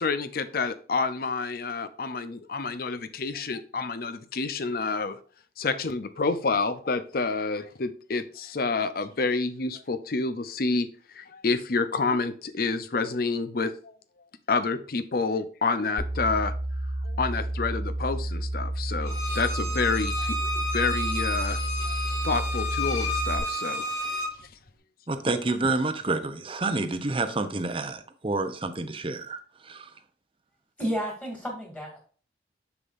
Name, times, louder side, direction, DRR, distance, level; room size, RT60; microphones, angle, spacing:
voice 1, 0.0-5.2 5.6-10.9 11.2-13.9 14.5-16.5 17.0-21.6 21.9-22.0 22.2-23.9 24.1-24.2, left 4 dB, 55° left, 0.6 m, -28 dB
sound 1, 16.0-23.4, right 1 dB, 35° left, 2.9 m, -31 dB
Bowed string instrument, 19.0-24.3, left 1 dB, 80° left, 3.8 m, -31 dB
voice 2, 25.1-29.9, right 3 dB, 30° right, 0.6 m, -29 dB
voice 3, 30.8-32.0, equal, 10° left, 2.5 m, -31 dB
7.1 x 6.8 x 2.6 m
head